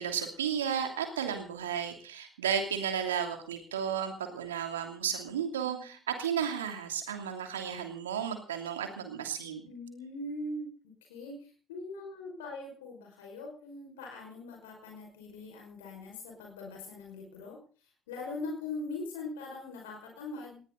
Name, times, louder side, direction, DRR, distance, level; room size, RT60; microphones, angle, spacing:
voice 1, 0.0-9.6, right 8 dB, 80° right, 6 dB, 2.9 m, -33 dB
voice 2, 5.6-5.9 9.7-10.7 11.1-17.6 18.1-20.6, left 2 dB, 75° left, 1 dB, 5.3 m, -41 dB
20.0 x 16.0 x 4.0 m, 0.40 s
figure-of-eight pair, 55°, 0 cm